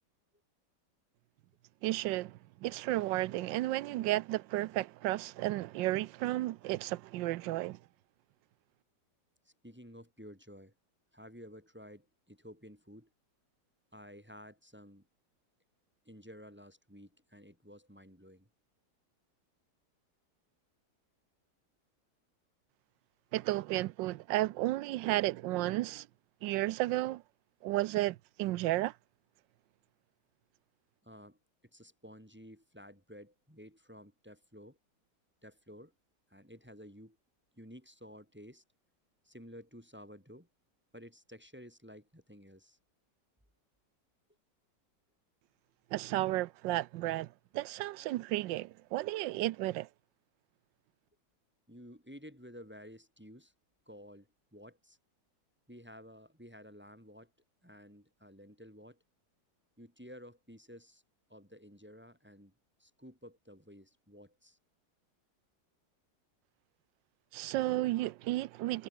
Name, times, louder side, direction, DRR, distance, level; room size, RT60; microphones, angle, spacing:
voice 1, 1.8-7.8 23.3-26.1 26.4-27.2 27.6-28.9 45.9-49.9 67.3-68.9, right 16 dB, 90° right, 1.3 m, -33 dB
voice 2, 9.4-10.7 11.1-13.1 13.9-15.1 16.0-18.5 31.0-31.4 31.7-34.8 35.4-35.9 36.3-37.2 37.6-38.6 39.2-40.5 40.9-42.8 51.7-53.5 53.9-55.0 55.7-57.3 57.6-59.0 59.8-61.0 61.3-62.5 62.8-64.6, equal, 5° right, 6.1 m, -53 dB
omnidirectional pair, 1.9 m